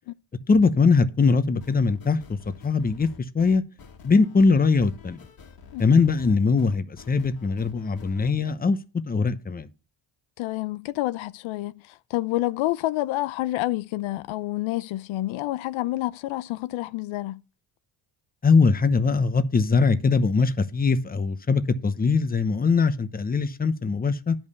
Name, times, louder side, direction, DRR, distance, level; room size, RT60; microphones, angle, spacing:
voice 1, 0.5-2.4 2.6-3.1 3.3-3.6 4.0-5.2 5.8-8.8 9.1-9.7 18.4-24.4, left 4 dB, 20° left, 0.9 m, -21 dB
sound 1, 1.6-8.3, left 5 dB, 50° left, 1.9 m, -48 dB
voice 2, 10.4-17.4, left 16 dB, 85° left, 0.6 m, -28 dB
10.5 x 5.5 x 6.8 m
cardioid pair, 105°, 46 cm